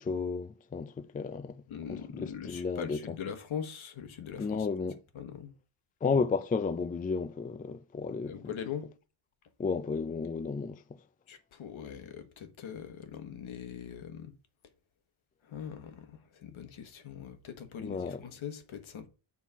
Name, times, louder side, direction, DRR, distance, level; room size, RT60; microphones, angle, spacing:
voice 1, 0.0-1.6 1.9-3.2 4.4-5.0 6.0-8.5 9.6-11.0 17.8-18.2, left 5 dB, 20° left, 0.3 m, -33 dB
voice 2, 1.7-4.7 5.1-5.5 8.3-8.9 11.3-14.3 15.4-19.1, left 8 dB, 75° left, 1.4 m, -41 dB
7.3 x 4.3 x 5.6 m
wide cardioid pair, 135°, 48 cm